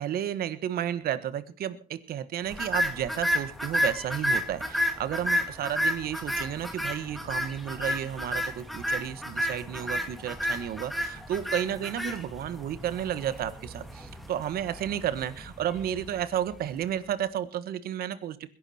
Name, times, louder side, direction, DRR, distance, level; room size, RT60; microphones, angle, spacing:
voice 1, 0.0-18.5, right 10 dB, 65° right, 14 dB, 1.4 m, -32 dB
sound 1, 2.5-16.8, left 1 dB, ahead, 2.1 m, -32 dB
21.5 x 11.0 x 4.3 m, 0.39 s
cardioid pair, 110°, 17 cm